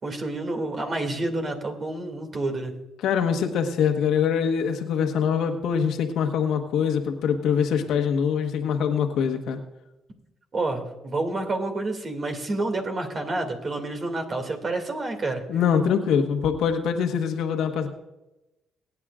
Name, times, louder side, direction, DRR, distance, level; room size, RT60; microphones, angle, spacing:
voice 1, 0.0-2.7 10.5-15.4, right 2 dB, 40° right, 4 dB, 2.4 m, -29 dB
voice 2, 3.0-9.6 15.5-17.9, left 7 dB, 85° left, 5 dB, 1.3 m, -24 dB
24.5 x 9.4 x 2.5 m, 0.96 s
cardioid pair, 90°, 0 cm